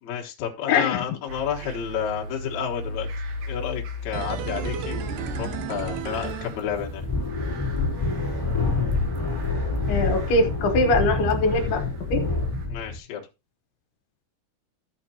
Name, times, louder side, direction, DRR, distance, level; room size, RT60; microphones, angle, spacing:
voice 1, 0.0-3.1 3.5-7.0 12.7-13.2, left 8 dB, 55° left, 0 dB, 2.3 m, -31 dB
voice 2, 0.7-1.0 9.9-11.8 12.1-12.2, left 2 dB, 75° left, 5 dB, 3.1 m, -22 dB
sound 1, 1.3-12.7, equal, 60° right, 2.3 m, -38 dB
sound 2, 4.1-7.2 7.5-7.6, right 9 dB, 75° right, 2.0 m, -34 dB
sound 3, 4.6-13.0, left 3 dB, 10° left, 2.9 m, -28 dB
13.5 x 6.6 x 2.9 m, 0.26 s
omnidirectional pair, 4.7 m